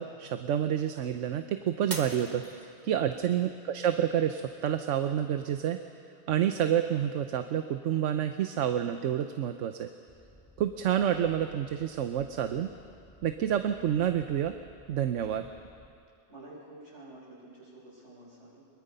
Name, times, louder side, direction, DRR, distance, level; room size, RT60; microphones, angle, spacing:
voice 1, 0.0-5.8 6.3-9.9 10.6-12.7 13.2-14.5 14.9-15.5, right 10 dB, 85° right, 8 dB, 1.1 m, -29 dB
Shatter, 1.9-3.2 3.7-4.2 4.7-4.8, right 2 dB, 35° right, 1.7 m, -40 dB
sound 1, 10.1-15.9, left 1 dB, 10° left, 3.4 m, -57 dB
voice 2, 16.3-18.7, right 2 dB, 70° right, -6 dB, 6.9 m, -50 dB
24.0 x 22.0 x 5.5 m, 2.4 s
omnidirectional pair, 1.2 m